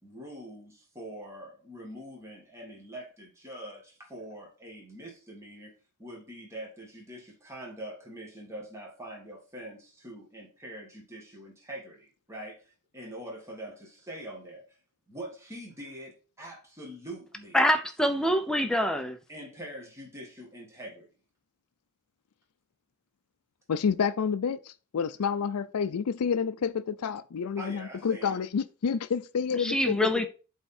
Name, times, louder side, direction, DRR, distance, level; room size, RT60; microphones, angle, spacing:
voice 1, 0.0-5.7 6.0-14.8 15.1-17.6 19.3-21.1 27.6-28.4, right 1 dB, 15° right, 1.7 m, -44 dB
voice 2, 17.5-19.2 29.6-30.3, equal, 5° left, 0.6 m, -25 dB
voice 3, 23.7-30.0, left 6 dB, 80° left, 0.4 m, -29 dB
8.0 x 3.5 x 4.3 m
head